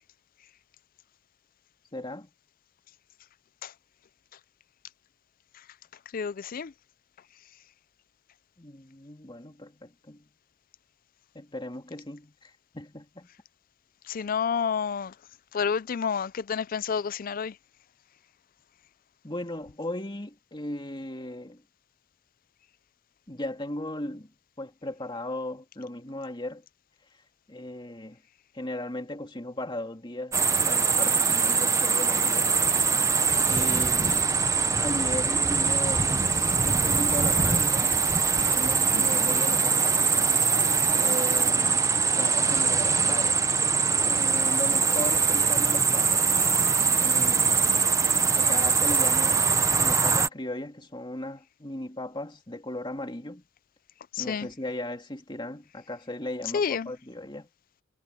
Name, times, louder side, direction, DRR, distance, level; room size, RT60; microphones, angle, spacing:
voice 1, 1.9-2.3 8.6-10.3 11.3-13.3 19.2-21.6 23.3-24.3 24.6-26.6 27.5-28.2 28.5-32.5 33.4-34.4 34.8-36.2 36.6-37.9 38.4-40.3 40.9-41.9 42.2-43.4 44.0-46.3 46.8-47.6 48.3-49.5 49.8-53.4 54.2-57.5, left 1 dB, 20° left, 2.5 m, -37 dB
voice 2, 6.1-6.7 14.1-15.1 15.5-17.5 38.9-39.3 54.1-54.5 56.5-56.9, left 6 dB, 40° left, 0.4 m, -29 dB
sound 1, 30.3-50.3, right 5 dB, 15° right, 0.7 m, -23 dB
head